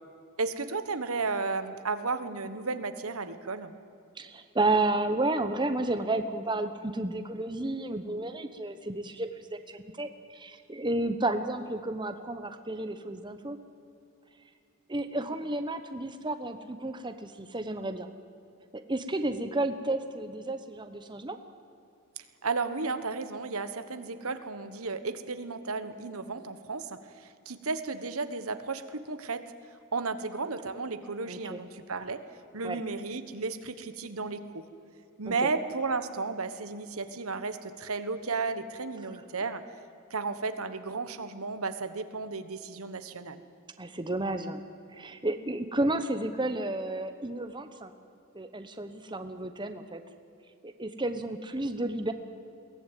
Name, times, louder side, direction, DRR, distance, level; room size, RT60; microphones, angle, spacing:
voice 1, 0.4-3.7 22.4-29.5 29.9-32.2 32.5-34.7 35.2-39.6 40.1-43.4, right 4 dB, 75° right, 11 dB, 1.3 m, -33 dB
voice 2, 4.2-13.6 14.9-18.1 18.9-21.4 31.3-31.6 32.6-32.8 35.2-35.5 43.8-44.6 44.9-47.9 48.3-50.0 50.6-52.1, right 2 dB, 20° right, 8 dB, 1.0 m, -32 dB
22.0 x 17.5 x 9.2 m, 2.6 s
head